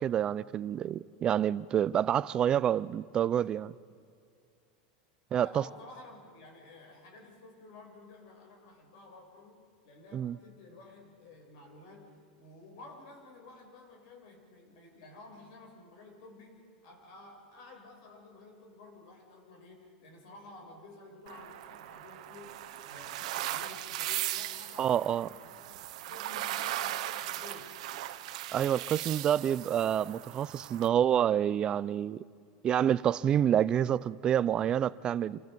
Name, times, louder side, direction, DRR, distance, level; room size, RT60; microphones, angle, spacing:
voice 1, 0.0-3.7 5.3-5.6 10.1-10.4 24.8-25.3 28.5-32.2 32.6-35.4, right 10 dB, 20° right, 0.5 m, -28 dB
voice 2, 5.3-25.8 26.1-27.8, left 2 dB, 55° left, 7.1 m, -52 dB
sound 1, 21.3-30.9, right 14 dB, 70° right, 1.3 m, -38 dB
29.0 x 24.5 x 5.3 m
supercardioid pair, 170°, 4 cm